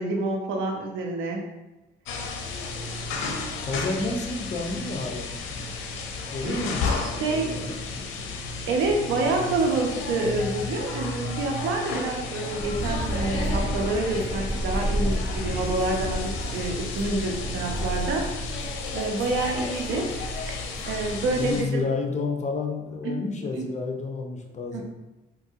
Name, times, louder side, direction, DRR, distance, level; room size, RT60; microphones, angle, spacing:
voice 1, 0.0-1.4 6.4-7.6 8.7-18.6 18.9-20.1 20.9-21.8 23.0-23.2 23.6-23.7 24.7-24.8, right 3 dB, 90° right, 2 dB, 0.6 m, -27 dB
sound 1, 2.0-21.6, left 4 dB, 85° left, 0.5 m, -33 dB
voice 2, 3.7-5.7 6.3-8.3 21.4-24.8, left 3 dB, 35° left, 2 dB, 0.6 m, -31 dB
sound 2, 12.6-21.6, equal, 10° right, 0.9 m, -32 dB
3.8 x 2.6 x 2.7 m, 1.1 s
cardioid pair, 90°, 20 cm